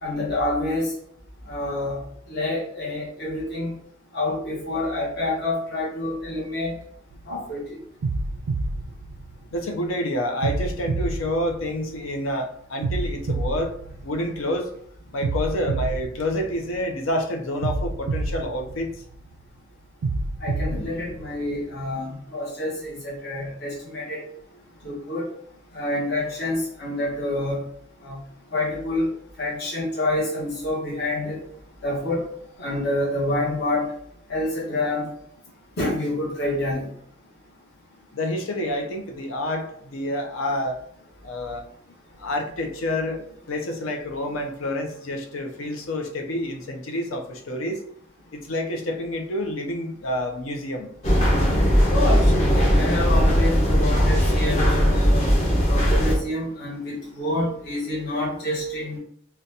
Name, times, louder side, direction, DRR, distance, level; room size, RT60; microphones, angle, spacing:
voice 1, 0.0-0.9 1.5-2.0 2.3-3.8 4.1-6.8 7.3-7.8 20.4-24.2 24.8-25.3 25.7-27.6 28.0-28.2 28.5-29.1 29.4-31.4 31.8-32.3 32.6-33.9 34.3-35.1 35.8-36.9 51.9-55.2 55.7-59.0, left 1 dB, 55° left, -5 dB, 1.0 m, -27 dB
sound 1, 7.1-7.4 8.0-9.8 10.4-12.2 12.8-14.6 15.2-17.0 17.6-19.4 20.0-21.8, right 2 dB, 65° right, 0.3 m, -29 dB
voice 2, 9.5-13.7 14.0-14.7 15.1-18.9 38.1-40.8 41.2-41.6 42.2-43.2 43.5-47.8 48.3-50.9, left 1 dB, 85° left, 3 dB, 0.6 m, -28 dB
sound 2, 51.0-56.2, equal, 35° left, 0.8 m, -19 dB
3.8 x 2.2 x 2.7 m, 0.65 s
head